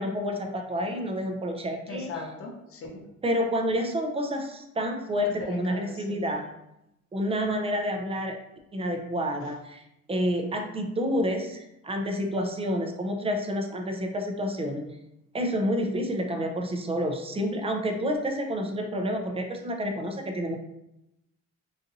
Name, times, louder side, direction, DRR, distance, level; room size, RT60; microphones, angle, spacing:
voice 1, 0.0-2.1 3.2-6.4 7.1-8.4 8.7-9.8 10.1-14.9 15.3-20.6, equal, 20° right, 4 dB, 0.5 m, -29 dB
voice 2, 1.9-3.0 5.2-6.2 9.4-9.5, left 3 dB, 45° left, 0 dB, 0.8 m, -39 dB
4.0 x 2.6 x 2.6 m, 0.86 s
cardioid pair, 90°, 30 cm